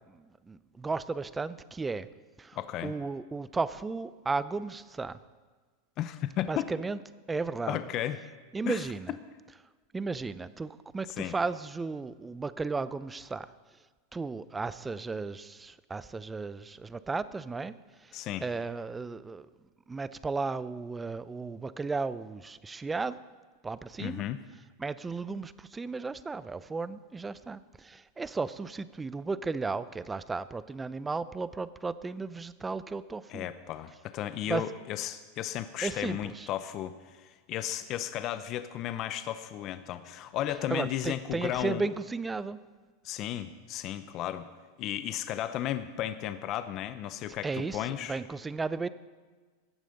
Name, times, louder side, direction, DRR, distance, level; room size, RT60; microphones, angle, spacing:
voice 1, 0.1-2.1 2.4-5.2 6.5-7.0 7.3-7.8 8.5-9.1 9.9-13.5 14.1-17.7 18.0-19.5 19.9-23.2 23.6-24.3 24.8-33.5 34.5-34.6 35.8-36.5 40.7-42.6 47.4-48.9, right 4 dB, 10° right, 16 dB, 0.4 m, -34 dB
voice 2, 2.6-2.9 6.0-6.7 7.7-8.2 8.7-8.8 11.2-11.3 18.1-18.4 24.0-24.4 33.3-41.8 43.0-44.5 44.8-48.2, left 12 dB, 40° left, 11 dB, 0.6 m, -34 dB
15.0 x 9.4 x 5.2 m, 1.4 s
supercardioid pair, 135°, 0 cm